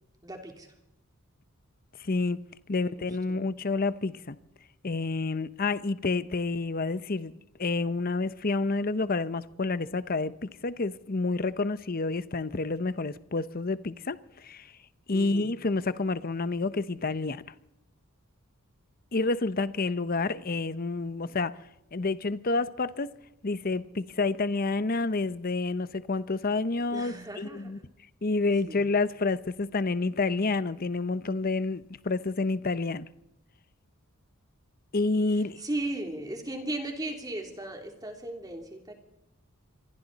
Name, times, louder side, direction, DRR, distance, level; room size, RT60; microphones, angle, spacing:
voice 1, 0.2-0.7 2.7-3.4 15.1-15.5 26.9-27.8 28.6-28.9 35.6-38.9, right 1 dB, 20° right, 3.1 m, -37 dB
voice 2, 2.0-2.4 2.7-4.4 4.8-7.3 7.6-14.7 15.1-17.4 19.1-21.6 21.9-23.1 23.4-27.8 28.2-33.1 34.9-35.6, left 3 dB, 40° left, 0.8 m, -29 dB
27.0 x 23.0 x 4.1 m
head